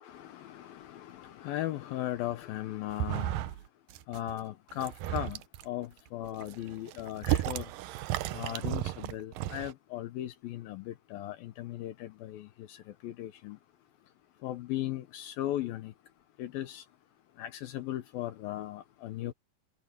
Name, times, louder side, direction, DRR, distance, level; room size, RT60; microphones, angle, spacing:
voice 1, 0.0-3.5 4.1-7.7 8.3-13.6 14.4-15.9 16.4-16.8 17.4-19.3, left 13 dB, 75° left, 2.4 m, -37 dB
sound 1, 2.9-3.6 3.9-4.3 4.7-5.6 6.2-9.7, right 14 dB, 80° right, 2.0 m, -33 dB
omnidirectional pair, 4.9 m